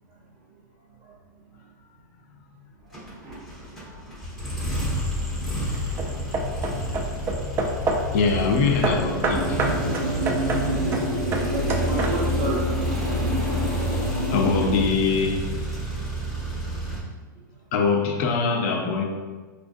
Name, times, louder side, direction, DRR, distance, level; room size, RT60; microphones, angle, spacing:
sound 1, 2.9-17.0, equal, ahead, 0.7 m, -29 dB
voice 1, 2.9-4.1 5.2-5.3 5.8-6.2 6.6-6.9 7.4-7.5 11.5-12.7, right 2 dB, 40° right, 0.9 m, -34 dB
Hammer / Wood, 4.6-5.1 5.7-8.2 8.8-12.5, right 3 dB, 20° right, 0.3 m, -28 dB
voice 2, 8.1-9.7 14.3-15.5 17.7-19.0, left 4 dB, 45° left, 0.6 m, -23 dB
sound 2, 8.9-14.7, right 1 dB, 70° right, 1.1 m, -29 dB
4.4 x 2.5 x 2.5 m
hypercardioid pair, 145°, 11 cm